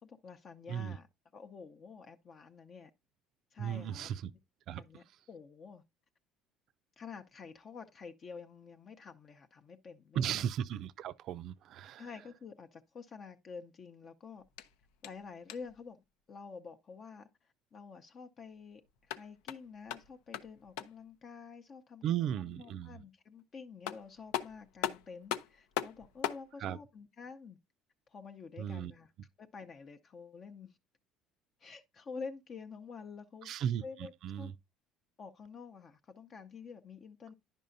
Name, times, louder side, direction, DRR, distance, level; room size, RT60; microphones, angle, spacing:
voice 1, 0.0-1.1 1.3-2.9 3.5-4.1 4.8-5.8 7.0-10.5 12.0-14.4 15.0-22.0 22.4-27.6 28.1-29.1 29.4-30.8 31.6-33.5 33.8-34.5 35.2-37.3, left 5 dB, 45° left, 0.6 m, -49 dB
voice 2, 3.6-4.3 4.7-4.8 10.1-12.1 22.0-23.0 26.6-26.8 28.6-28.9 33.4-33.8 34.2-34.5, right 9 dB, 60° right, 0.4 m, -35 dB
sound 1, 14.4-15.8 18.9-21.1 23.4-23.5 23.9-26.5, left 11 dB, 80° left, 0.5 m, -40 dB
10.0 x 5.4 x 2.6 m
supercardioid pair, 85°, 0 cm